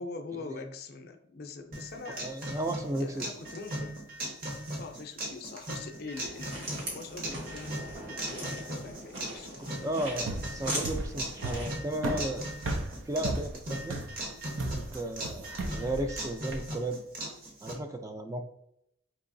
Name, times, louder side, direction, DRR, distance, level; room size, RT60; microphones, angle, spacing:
voice 1, 0.0-2.4 3.0-4.0 4.8-9.7, left 3 dB, 55° left, 7 dB, 0.5 m, -43 dB
sound 1, 1.7-17.7, right 1 dB, 50° right, 1.0 m, -39 dB
voice 2, 2.2-3.3 9.6-12.5 13.1-14.0 14.7-17.0 17.6-18.4, right 1 dB, 15° right, 5 dB, 0.3 m, -34 dB
sound 2, 6.1-11.8, right 1 dB, 70° right, 1.5 m, -40 dB
sound 3, 10.1-16.7, right 2 dB, 85° right, 0.5 m, -35 dB
4.6 x 2.9 x 2.5 m, 0.74 s
head